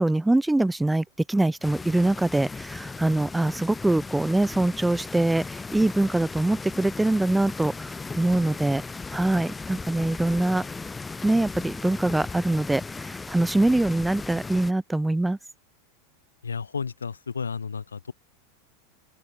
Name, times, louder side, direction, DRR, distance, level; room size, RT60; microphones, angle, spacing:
voice 1, 0.0-8.8 9.1-10.6 11.2-15.4, right 2 dB, 5° right, 0.3 m, -24 dB
sound 1, 1.6-14.7, left 4 dB, 15° left, 1.1 m, -37 dB
voice 2, 16.4-18.1, left 5 dB, 85° left, 3.5 m, -32 dB
open air
hypercardioid pair, 90°, 0 cm